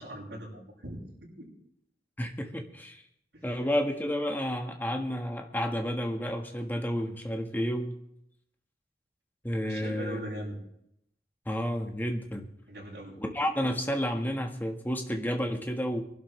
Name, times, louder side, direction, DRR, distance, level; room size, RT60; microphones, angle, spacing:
voice 1, 0.0-1.5 3.3-3.6 9.7-10.6 12.7-13.2, right 1 dB, 70° right, -9 dB, 6.6 m, -41 dB
voice 2, 2.2-3.0 3.4-7.9 9.4-10.2 11.4-12.5 13.2-16.0, equal, 10° left, 3 dB, 1.4 m, -31 dB
24.0 x 11.5 x 3.3 m, 0.77 s
head